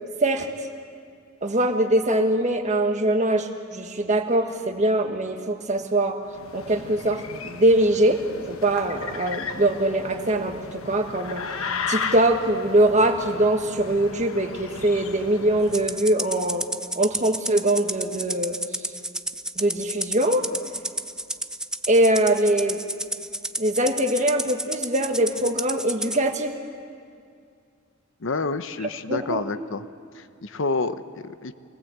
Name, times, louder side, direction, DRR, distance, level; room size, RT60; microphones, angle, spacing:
voice 1, 1.4-6.2 6.5-8.2 8.5-11.4 11.9-16.6 17.0-18.5 19.6-20.4 21.9-22.8 23.6-26.5 29.1-29.4, right 1 dB, 35° right, 5 dB, 1.6 m, -22 dB
sound 1, 6.3-16.0, left 5 dB, 85° left, 1.2 m, -35 dB
Rattle (instrument), 15.7-26.2, right 1 dB, 5° right, 0.5 m, -31 dB
voice 2, 28.2-29.9 30.1-31.5, left 3 dB, 65° left, 11 dB, 0.9 m, -29 dB
25.0 x 19.5 x 8.0 m, 2.3 s
head